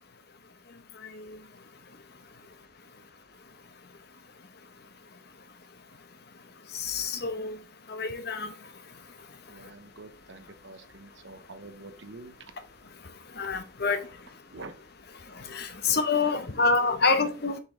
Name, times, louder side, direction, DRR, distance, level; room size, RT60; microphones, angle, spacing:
voice 1, 1.0-1.4 6.7-7.6 7.9-8.5 13.3-14.1 15.3-17.6, left 4 dB, 50° left, 0.9 m, -27 dB
voice 2, 9.5-12.3 14.5-14.7, right 2 dB, 60° right, 1.0 m, -46 dB
6.8 x 5.2 x 3.8 m
head